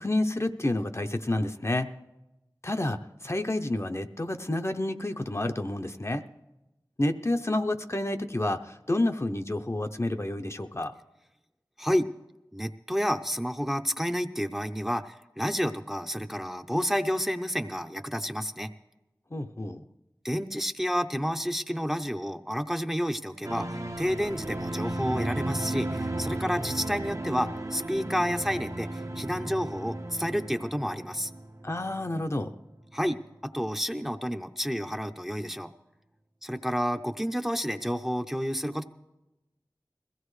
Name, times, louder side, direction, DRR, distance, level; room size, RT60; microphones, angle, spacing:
voice 1, 0.0-1.9 2.6-6.2 7.0-10.9 19.3-19.8 31.6-32.5, left 1 dB, 35° left, 6 dB, 0.7 m, -29 dB
voice 2, 12.5-18.7 20.2-31.3 32.9-35.7 36.4-38.8, equal, 5° right, 6 dB, 0.6 m, -30 dB
sound 1, 23.4-32.6 32.9-33.0, right 1 dB, 45° right, 0.7 m, -34 dB
21.5 x 16.0 x 3.2 m, 0.98 s
wide cardioid pair, 45°, 8 cm